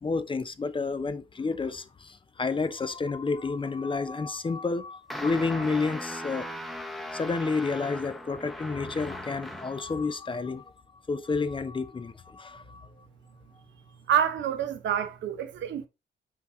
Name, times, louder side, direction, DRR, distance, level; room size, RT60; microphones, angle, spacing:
voice 1, 0.0-6.5 7.1-10.6 11.1-12.9, left 4 dB, 25° left, 0.7 m, -30 dB
sound 1, 5.1-9.9, equal, ahead, 1.0 m, -38 dB
voice 2, 14.1-15.9, right 9 dB, 70° right, 0.9 m, -27 dB
5.9 x 4.6 x 3.9 m
cardioid pair, 90°, 20 cm